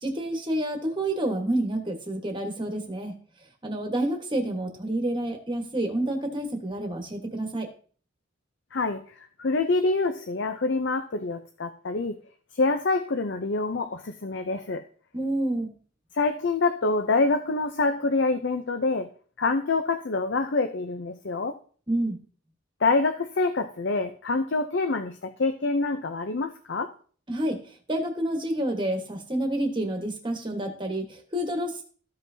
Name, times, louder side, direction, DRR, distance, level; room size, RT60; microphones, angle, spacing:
voice 1, 0.0-3.1 3.6-7.7 15.1-15.7 21.9-22.2 27.3-27.6 27.9-31.8, right 1 dB, 25° right, 4 dB, 1.4 m, -28 dB
voice 2, 8.7-12.2 12.5-14.8 16.1-19.1 19.4-21.6 22.8-26.9, left 3 dB, 55° left, 7 dB, 0.6 m, -26 dB
14.0 x 5.7 x 2.7 m, 0.43 s
head